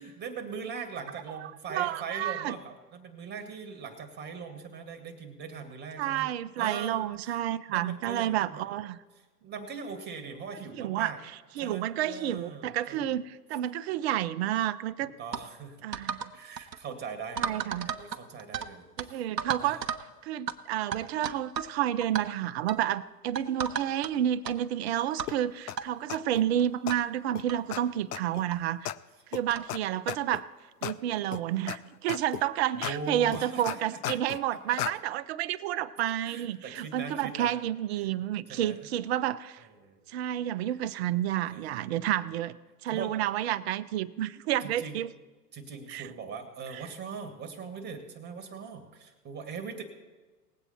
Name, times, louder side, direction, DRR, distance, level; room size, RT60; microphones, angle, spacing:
voice 1, 0.0-7.4 7.7-8.6 9.1-11.2 11.6-13.2 15.0-15.8 16.3-19.2 19.6-19.8 27.8-28.0 32.7-34.8 36.2-37.5 38.5-38.8 39.6-40.0 41.5-42.2 42.9-43.1 44.6-45.0 45.5-49.8, right 5 dB, 20° right, 7 dB, 1.8 m, -41 dB
voice 2, 1.7-2.5 6.0-9.0 10.8-11.1 11.6-15.1 15.8-16.3 17.4-18.0 19.0-19.8 20.2-28.9 29.3-30.5 30.8-39.6 40.1-42.6 42.8-45.1 45.9-46.1, right 12 dB, 40° right, 16 dB, 0.6 m, -30 dB
sound 1, 15.3-15.5 15.9-16.3 16.6-16.8 17.4-18.7 19.0-19.1 19.4-20.1 20.5-20.6 20.9-21.7 22.0-22.2 22.7-22.9 23.4-24.1 24.4-24.6 25.2-25.4 25.8-25.9 26.6-26.7 26.9-27.0 27.5-27.6 28.5-28.6 29.5-29.7, right 7 dB, 85° right, 0.9 m, -34 dB
sound 2, 25.3-25.4 25.7-25.8 26.1-26.4 26.9-27.0 27.4-27.5 27.7-27.8 28.1-28.4 28.9-29.0 29.3-29.4 29.7-29.8 30.1-30.4 30.8-30.9 31.3-31.8 32.1-32.4 32.8-32.9 33.3-34.4 34.8-34.9, left 12 dB, 70° left, 0.6 m, -34 dB
19.5 x 8.1 x 4.3 m, 1.2 s
hypercardioid pair, 110°, 48 cm